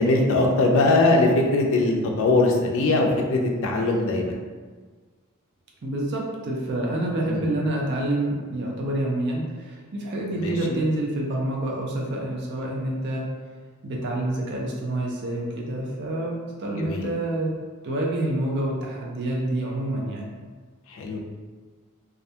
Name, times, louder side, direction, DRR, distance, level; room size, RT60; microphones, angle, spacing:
voice 1, 0.0-4.4 7.2-7.4 10.4-10.8 16.8-17.0 20.9-21.2, left 2 dB, 60° left, 1 dB, 0.4 m, -21 dB
voice 2, 5.8-13.3 13.8-17.6 17.8-20.3, right 1 dB, 50° right, -2 dB, 0.5 m, -27 dB
2.3 x 2.1 x 2.7 m, 1.5 s
head